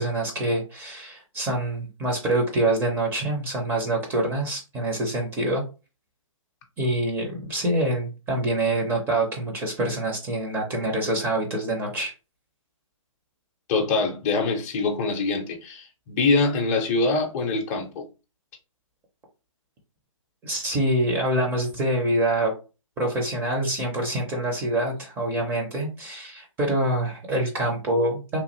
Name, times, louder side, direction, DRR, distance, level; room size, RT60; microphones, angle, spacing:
voice 1, 0.0-5.6 6.8-12.1 20.4-22.5 23.0-28.4, right 1 dB, 15° right, 0.6 m, -25 dB
voice 2, 13.7-18.0, left 3 dB, 30° left, 0.6 m, -24 dB
3.0 x 2.3 x 3.0 m
figure-of-eight pair, 135°, 17 cm